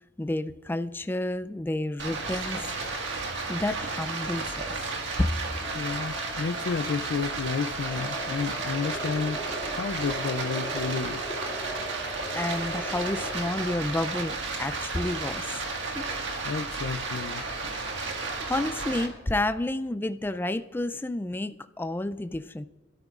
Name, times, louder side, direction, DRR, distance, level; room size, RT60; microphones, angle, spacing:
voice 1, 0.2-2.6 3.5-4.7 5.2-5.3 12.3-15.6 15.9-16.1 18.4-22.6, left 1 dB, 10° left, 0.3 m, -30 dB
Stream, 2.0-19.1, right 3 dB, 80° right, 1.7 m, -33 dB
sound 1, 5.6-16.5, left 10 dB, 40° right, 4.7 m, -53 dB
voice 2, 5.7-9.4 9.7-11.3 16.4-17.5, left 5 dB, 85° left, 0.4 m, -31 dB
sound 2, 7.8-13.3, equal, 10° right, 3.6 m, -38 dB
24.0 x 12.5 x 2.4 m
head